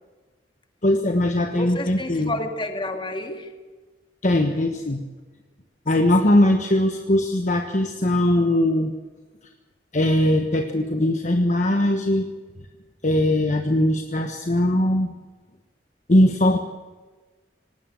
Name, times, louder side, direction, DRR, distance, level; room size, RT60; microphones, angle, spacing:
voice 1, 0.8-2.3 4.2-5.0 5.9-8.9 9.9-12.3 13.0-15.1 16.1-16.6, left 1 dB, 45° left, 4 dB, 1.3 m, -20 dB
voice 2, 1.5-3.6 6.2-6.4, left 1 dB, 30° left, 5 dB, 2.3 m, -30 dB
18.5 x 18.5 x 7.6 m, 1.3 s
head